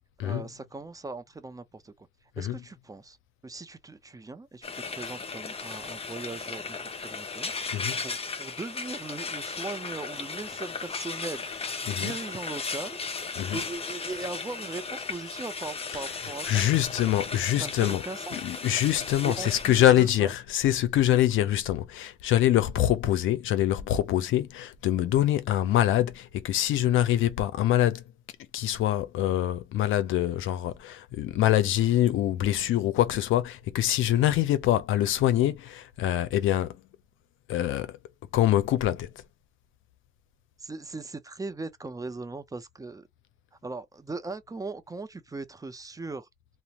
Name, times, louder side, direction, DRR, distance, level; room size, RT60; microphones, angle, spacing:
voice 1, 0.2-2.1 2.4-3.2 3.4-7.5 8.0-11.5 11.8-13.0 13.5-16.8 17.6-18.4 19.3-20.3 40.6-43.1 43.6-46.3, right 3 dB, 15° right, 0.5 m, -39 dB
Frying (food), 4.6-19.8, left 4 dB, 30° left, 0.6 m, -36 dB
voice 2, 16.5-18.0 18.3-28.0 28.5-36.8 37.5-38.0 38.3-39.1, left 12 dB, 80° left, 0.5 m, -24 dB
2.5 x 2.1 x 2.9 m
cardioid pair, 90°, 20 cm